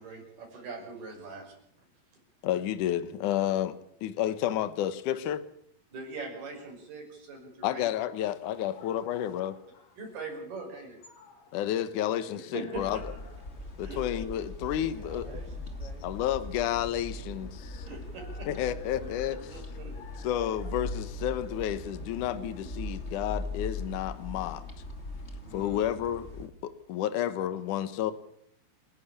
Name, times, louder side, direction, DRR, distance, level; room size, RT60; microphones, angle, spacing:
voice 1, 0.0-1.5 5.9-7.9 10.0-11.2 12.5-13.0 13.8-14.0 17.9-18.5 19.0-19.1 19.5-19.9 22.3-22.7 25.4-25.8, right 3 dB, 60° right, 2 dB, 7.7 m, -42 dB
voice 2, 2.4-5.4 7.6-9.6 11.5-13.1 13.8-15.3 16.0-17.9 18.5-19.6 20.2-24.6 25.5-28.1, left 11 dB, 65° left, 13 dB, 2.1 m, -31 dB
sound 1, 7.8-21.1, left 4 dB, 45° left, 3.6 m, -55 dB
sound 2, 12.7-26.5, left 2 dB, 20° left, 1.8 m, -40 dB
voice 3, 14.9-16.2 28.0-28.1, right 4 dB, 90° right, -3 dB, 6.1 m, -50 dB
28.5 x 11.0 x 8.7 m, 0.69 s
omnidirectional pair, 5.0 m